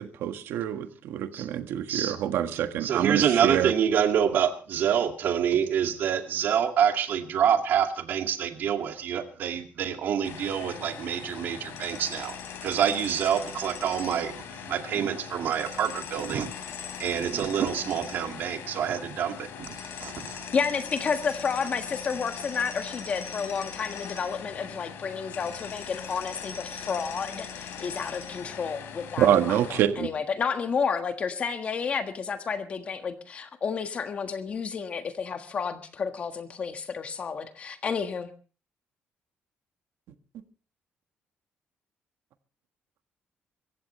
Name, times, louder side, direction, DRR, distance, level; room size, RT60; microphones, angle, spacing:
voice 1, 0.0-3.7 29.2-30.1, right 10 dB, 90° right, 8 dB, 1.6 m, -26 dB
voice 2, 2.8-12.4 12.6-16.5 17.0-20.5, right 8 dB, 55° right, 5 dB, 2.2 m, -27 dB
sound 1, 10.2-29.8, left 7 dB, 75° left, 4.2 m, -40 dB
voice 3, 20.5-38.3, left 6 dB, 35° left, 7 dB, 1.5 m, -31 dB
25.5 x 15.0 x 3.2 m, 0.37 s
cardioid pair, 180°, 4 cm